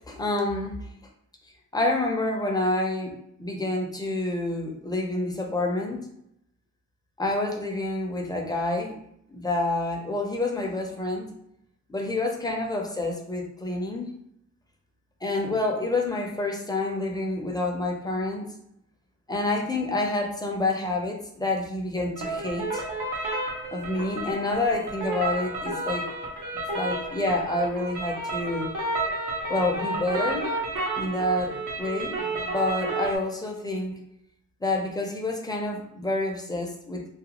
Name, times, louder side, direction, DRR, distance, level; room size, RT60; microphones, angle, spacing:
voice 1, 0.1-0.8 1.7-6.0 7.2-9.0 9.3-11.3 11.9-14.1 15.2-18.5 19.3-22.8 23.7-26.1 26.7-28.7 29.5-30.5 30.9-34.0 34.6-37.1, left 2 dB, 15° left, 0 dB, 0.5 m, -28 dB
sound 1, 22.2-33.2, right 2 dB, 85° right, 0.7 m, -31 dB
2.4 x 2.2 x 2.9 m, 0.76 s
wide cardioid pair, 90°, 30 cm